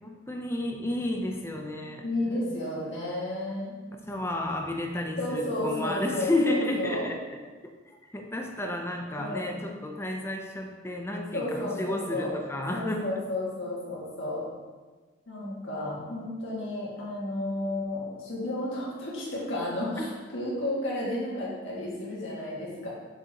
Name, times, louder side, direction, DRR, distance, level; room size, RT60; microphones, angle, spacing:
voice 1, 0.0-2.0 4.1-7.2 7.6-13.0 20.0-20.1, left 1 dB, 10° left, 2 dB, 0.5 m, -31 dB
voice 2, 2.0-3.7 5.2-7.1 9.2-9.5 11.3-12.3 12.7-14.5 15.3-22.9, left 1 dB, 65° left, -6 dB, 1.9 m, -32 dB
6.3 x 5.4 x 2.9 m, 1.4 s
head